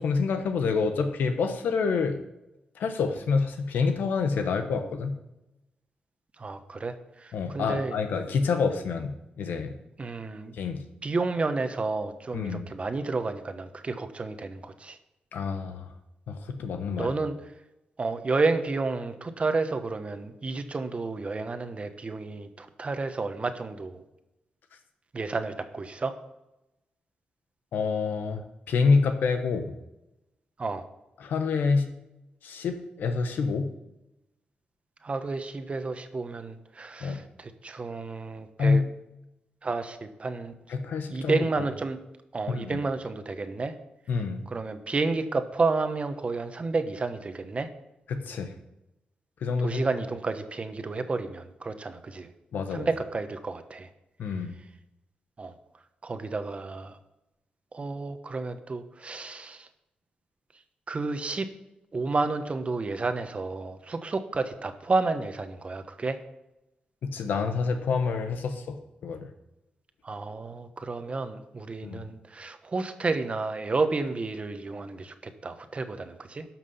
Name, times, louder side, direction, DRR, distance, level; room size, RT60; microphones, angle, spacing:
voice 1, 0.0-2.2 2.7-5.2 7.3-9.7 10.5-10.8 12.3-12.6 15.3-15.9 16.3-17.1 27.7-28.4 28.7-29.7 31.2-31.9 32.4-33.7 37.0-37.2 38.6-38.9 40.7-41.6 42.5-42.8 44.1-44.5 48.1-48.5 49.4-49.8 52.5-52.9 54.2-54.5 67.0-69.3 71.8-72.0, left 4 dB, 85° left, 7 dB, 1.1 m, -27 dB
voice 2, 6.4-8.0 10.0-10.6 11.0-15.0 17.0-17.3 18.0-24.0 25.1-26.2 30.6-30.8 35.0-38.8 39.6-40.5 41.1-42.0 42.3-43.7 44.5-47.7 49.6-52.3 52.7-53.9 55.4-55.5 56.0-57.0 57.7-59.7 60.9-61.5 61.9-66.2 70.0-76.4, right 3 dB, 40° right, 9 dB, 1.1 m, -31 dB
12.0 x 6.0 x 5.7 m, 0.91 s
cardioid pair, 65°, 3 cm